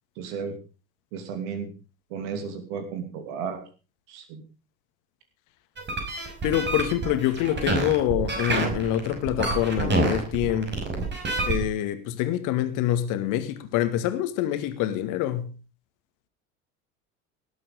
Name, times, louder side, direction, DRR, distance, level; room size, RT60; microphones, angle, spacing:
voice 1, 0.2-0.5 1.1-1.7 2.1-3.6 4.1-4.4, right 6 dB, 55° right, 2.8 m, -33 dB
sound 1, 5.8-11.6, right 2 dB, 25° right, 5.8 m, -27 dB
voice 2, 6.4-10.7 11.5-15.5, left 12 dB, 50° left, 2.1 m, -26 dB
19.0 x 9.5 x 5.3 m
figure-of-eight pair, 70°, 41 cm